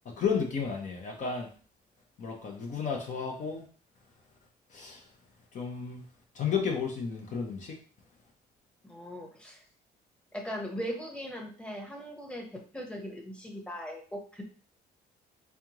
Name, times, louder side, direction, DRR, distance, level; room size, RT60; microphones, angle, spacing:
voice 1, 0.0-1.5 2.2-3.6 4.7-5.1 5.5-6.0 6.3-7.8, left 6 dB, 45° left, 0 dB, 0.9 m, -32 dB
voice 2, 8.8-9.6 10.3-14.4, equal, 5° left, 1 dB, 1.0 m, -39 dB
3.6 x 3.3 x 3.0 m, 0.41 s
cardioid pair, 110°, 17 cm